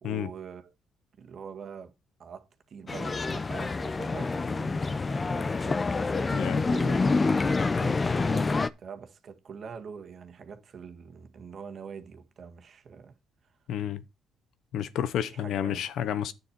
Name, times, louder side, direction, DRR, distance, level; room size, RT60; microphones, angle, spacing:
voice 1, 0.0-0.7 1.2-1.9 2.2-13.1 15.2-15.8, right 6 dB, 55° right, 1.7 m, -44 dB
sound 1, 2.9-8.7, left 3 dB, 30° left, 0.7 m, -27 dB
voice 2, 6.3-6.7 13.7-14.0 14.7-16.3, left 10 dB, 75° left, 0.8 m, -30 dB
9.6 x 7.2 x 4.4 m
supercardioid pair, 65°, 0 cm